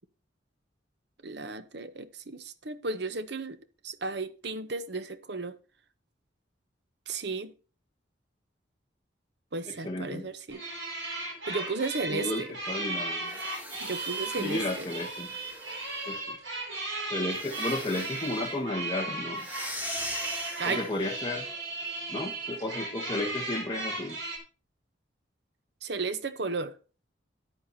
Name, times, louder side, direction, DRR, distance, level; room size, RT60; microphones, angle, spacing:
voice 1, 1.2-3.6 3.8-5.6 7.1-7.5 9.5-10.6 11.5-12.5 13.8-14.6 20.6-20.8 25.8-26.7, right 3 dB, 60° right, 0.9 m, -34 dB
voice 2, 9.7-10.3 12.1-13.3 14.4-15.3 16.1-16.4 17.1-19.5 20.6-21.5 22.1-24.2, left 2 dB, 25° left, 1.4 m, -33 dB
sound 1, 10.5-24.4, right 2 dB, 80° right, 5.0 m, -36 dB
sound 2, 13.2-16.2 17.3-18.4 19.3-21.1, left 1 dB, 10° right, 2.1 m, -41 dB
14.0 x 10.0 x 2.8 m
head